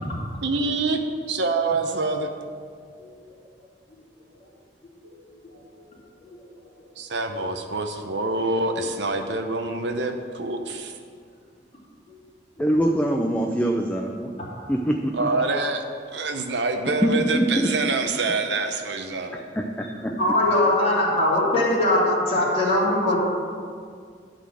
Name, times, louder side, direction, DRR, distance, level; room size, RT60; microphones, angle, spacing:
voice 1, 0.4-1.0 1.3-2.3 7.0-10.9 15.1-15.8 16.1-19.4, right 3 dB, 75° right, 5 dB, 0.8 m, -26 dB
voice 2, 12.6-14.3 14.7-15.3 17.0-17.7 19.6-20.1, equal, 10° left, 1 dB, 0.5 m, -23 dB
voice 3, 20.2-23.2, left 1 dB, 35° left, -6 dB, 2.9 m, -21 dB
11.5 x 4.2 x 7.7 m, 2.1 s
head